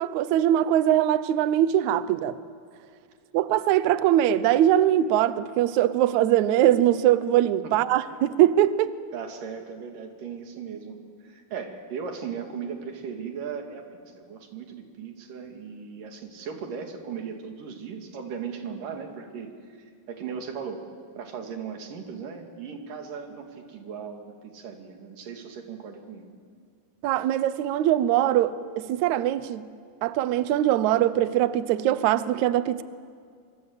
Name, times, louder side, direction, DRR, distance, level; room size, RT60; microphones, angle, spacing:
voice 1, 0.0-2.4 3.3-8.9 27.0-29.6 30.0-32.8, right 12 dB, 85° right, 14 dB, 1.6 m, -22 dB
voice 2, 9.1-11.0 11.2-20.9 21.2-26.3, right 6 dB, 60° right, 4 dB, 3.8 m, -37 dB
26.0 x 25.5 x 8.0 m, 2.1 s
omnidirectional pair, 4.4 m